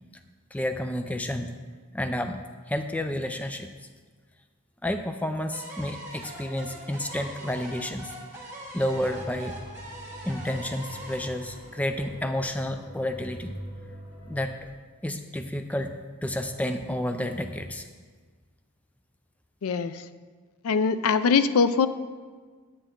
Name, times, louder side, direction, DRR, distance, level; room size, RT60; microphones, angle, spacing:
voice 1, 0.5-1.5 1.9-2.4 2.7-3.7 4.8-8.2 8.7-9.6 10.2-13.5 14.3-14.6 15.0-17.9, left 1 dB, 5° left, 7 dB, 0.3 m, -30 dB
sound 1, 5.5-12.5, right 1 dB, 10° right, 1.8 m, -43 dB
sound 2, 8.9-14.6, equal, 40° left, 1.3 m, -44 dB
voice 2, 19.6-19.9 20.6-21.9, left 5 dB, 85° left, 13 dB, 0.4 m, -22 dB
9.1 x 9.1 x 3.7 m, 1.5 s
head